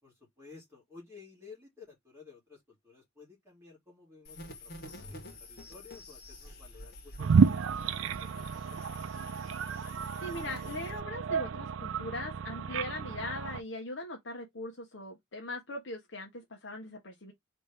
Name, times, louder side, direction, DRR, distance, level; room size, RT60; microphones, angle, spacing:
voice 1, 0.0-8.8, left 5 dB, 15° right, 2.8 m, -54 dB
sound 1, 4.2-11.0, left 2 dB, 50° left, 1.7 m, -49 dB
sound 2, 7.2-13.6, right 5 dB, 85° right, 0.4 m, -30 dB
voice 2, 10.2-17.3, left 2 dB, 65° left, 1.1 m, -40 dB
4.3 x 3.3 x 3.5 m
head